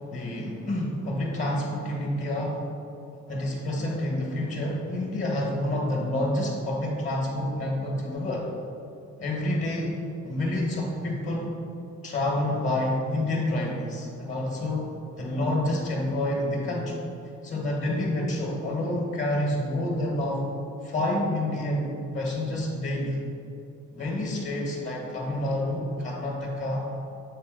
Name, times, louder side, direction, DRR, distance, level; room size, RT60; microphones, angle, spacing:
voice 1, 0.1-2.6 3.3-8.5 9.2-9.9 10.2-11.5 12.0-14.9 15.2-17.0 17.4-20.4 20.8-23.2 23.9-26.8, left 1 dB, 45° left, -4 dB, 1.5 m, -28 dB
7.6 x 4.1 x 3.9 m, 2.6 s
cardioid pair, 90°, 30 cm